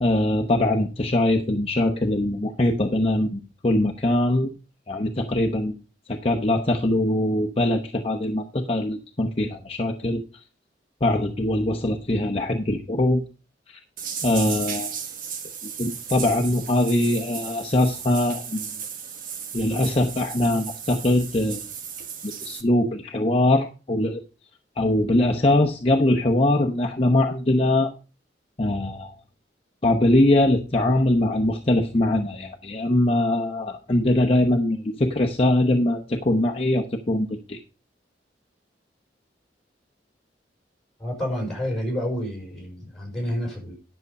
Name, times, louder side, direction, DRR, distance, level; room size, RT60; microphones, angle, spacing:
voice 1, 0.0-4.5 4.9-5.8 6.1-10.2 11.0-13.2 14.2-14.9 15.8-18.7 19.5-21.6 22.2-24.2 24.8-27.9 28.6-29.1 29.8-37.6, left 1 dB, 35° left, 1 dB, 0.9 m, -22 dB
sound 1, 14.0-22.6, right 7 dB, 50° right, 1.4 m, -35 dB
voice 2, 41.0-43.7, equal, 5° left, -1 dB, 5.7 m, -29 dB
11.0 x 6.7 x 5.3 m, 0.33 s
head